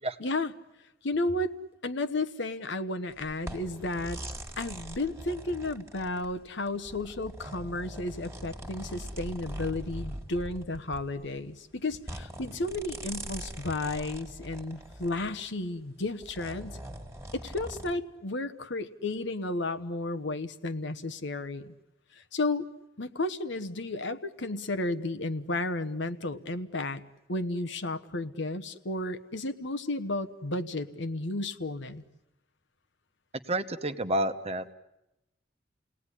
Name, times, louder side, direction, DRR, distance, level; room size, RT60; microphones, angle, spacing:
voice 1, 0.2-0.5 1.0-1.5 1.8-4.2 4.6-16.8 17.3-21.7 22.1-22.7 23.0-27.0 27.3-32.0, left 2 dB, 65° left, 11 dB, 1.2 m, -33 dB
sound 1, 3.1-15.4 16.0-17.9, right 1 dB, 15° right, 1.9 m, -42 dB
voice 2, 33.5-34.7, right 1 dB, 35° right, 9 dB, 1.0 m, -30 dB
29.5 x 18.5 x 10.0 m, 0.93 s
head